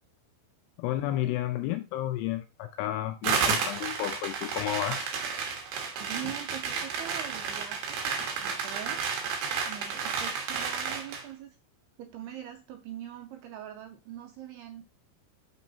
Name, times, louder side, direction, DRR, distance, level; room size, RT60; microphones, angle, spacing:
voice 1, 0.8-5.1 6.2-6.3, left 13 dB, 80° left, 2.5 m, -32 dB
sound 1, 3.2-11.2, right 6 dB, 65° right, 2.8 m, -32 dB
voice 2, 6.0-9.0 9.7-11.6 12.0-14.8, right 11 dB, 80° right, 2.4 m, -42 dB
6.2 x 6.2 x 2.8 m
omnidirectional pair, 5.2 m